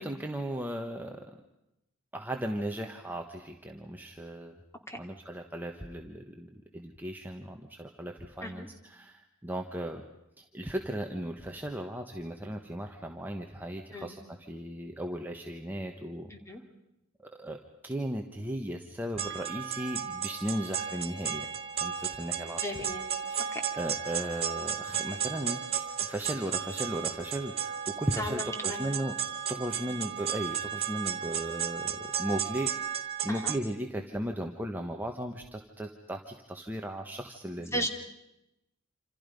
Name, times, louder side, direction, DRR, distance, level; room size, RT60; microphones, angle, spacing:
voice 1, 0.0-1.4 2.1-4.6 5.0-10.0 10.4-14.2 14.5-16.3 17.2-17.6 17.8-21.5 21.8-22.6 23.3-23.5 23.7-29.1 29.5-37.9, right 1 dB, 10° right, 2 dB, 1.2 m, -36 dB
voice 2, 16.3-16.6 22.6-23.1 23.5-23.6 28.1-29.0 29.7-30.0 33.3-33.5 37.6-37.9, equal, 15° left, 4 dB, 2.9 m, -36 dB
sound 1, 19.2-33.6, right 8 dB, 30° right, 2.7 m, -34 dB
27.5 x 27.5 x 5.3 m, 0.87 s
head